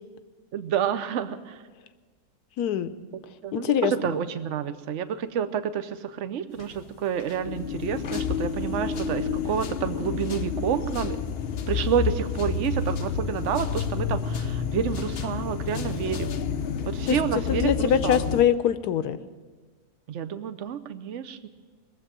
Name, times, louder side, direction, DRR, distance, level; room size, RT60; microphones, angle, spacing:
voice 1, 0.5-1.6 3.4-11.2 11.7-16.4 16.9-18.2 20.1-21.5, right 8 dB, 55° right, 11 dB, 1.0 m, -29 dB
voice 2, 2.6-2.9 3.5-4.1 17.0-17.2 17.5-19.2, left 9 dB, 75° left, 12 dB, 1.2 m, -23 dB
sound 1, 6.6-6.9 7.2-18.4, left 6 dB, 55° left, 0.7 m, -30 dB
20.5 x 7.8 x 8.9 m, 1.4 s
omnidirectional pair, 1.7 m